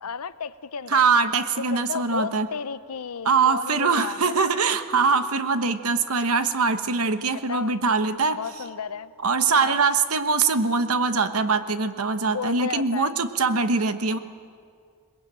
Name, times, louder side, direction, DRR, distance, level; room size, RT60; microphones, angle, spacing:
voice 1, 0.0-1.1 1.6-4.6 7.3-7.7 8.3-9.1 9.5-9.8 12.3-13.1, left 6 dB, 80° left, 15 dB, 0.7 m, -33 dB
voice 2, 0.9-2.5 3.2-8.4 9.2-14.2, right 4 dB, 75° right, 10 dB, 1.2 m, -22 dB
22.0 x 20.5 x 9.0 m, 2.2 s
head